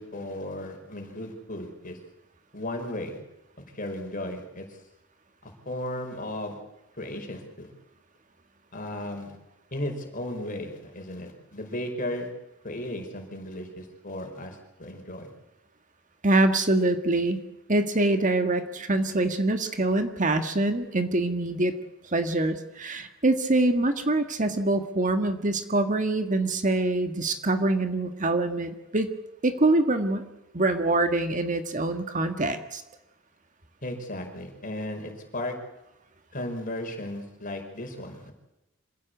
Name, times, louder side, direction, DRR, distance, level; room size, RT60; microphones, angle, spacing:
voice 1, 0.0-2.0 2.5-3.2 3.7-4.8 5.4-6.6 7.0-7.7 8.7-9.4 9.7-12.3 12.6-15.3 33.8-35.5 36.3-38.3, left 1 dB, 40° left, 3 dB, 5.4 m, -35 dB
voice 2, 16.2-17.4 17.7-21.7 22.0-29.1 29.4-30.3 30.5-32.8, right 2 dB, 35° right, 8 dB, 1.6 m, -24 dB
26.5 x 16.5 x 8.3 m, 0.93 s
head